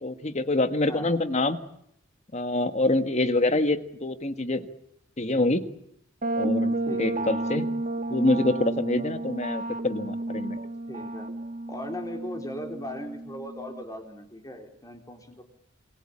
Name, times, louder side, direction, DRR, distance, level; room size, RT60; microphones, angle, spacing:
voice 1, 0.0-1.6 2.3-4.7 5.2-5.6 6.4-7.7 8.1-10.6, left 2 dB, 35° left, 10 dB, 1.6 m, -26 dB
sound 1, 6.2-13.8, right 2 dB, 40° right, 1.5 m, -31 dB
voice 2, 6.9-7.4 10.9-11.3 11.7-15.4, left 1 dB, 20° left, 4 dB, 3.8 m, -38 dB
27.0 x 21.5 x 8.7 m, 0.74 s
head